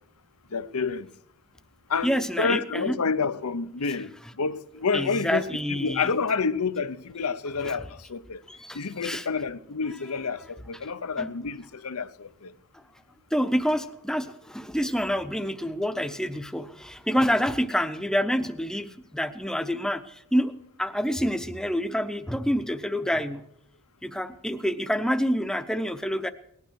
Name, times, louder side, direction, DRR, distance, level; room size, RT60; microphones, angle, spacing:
voice 1, 0.5-1.1 1.9-4.1 4.4-8.4 8.7-12.5, left 5 dB, 90° left, 0.8 m, -29 dB
voice 2, 2.0-3.0 4.9-6.1 7.6-7.7 8.5-9.3 11.2-11.3 13.3-20.5 20.8-23.4 24.0-26.3, equal, 5° left, 0.7 m, -27 dB
19.0 x 12.0 x 6.3 m
head